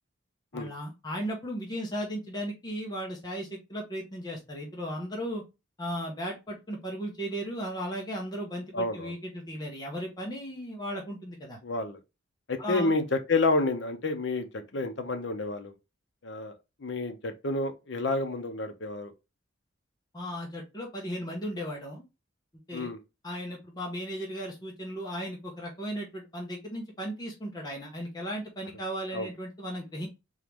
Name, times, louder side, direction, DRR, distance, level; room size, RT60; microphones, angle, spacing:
voice 1, 0.5-5.4 5.8-11.6 12.6-12.9 20.1-22.0 22.7-22.9 23.2-30.1, equal, 20° left, 1.0 m, -36 dB
voice 2, 8.7-9.1 11.6-12.0 12.5-15.7 16.2-16.6 16.8-19.1 22.7-23.0 29.1-29.3, left 2 dB, 60° left, 0.7 m, -29 dB
3.7 x 3.0 x 3.4 m
head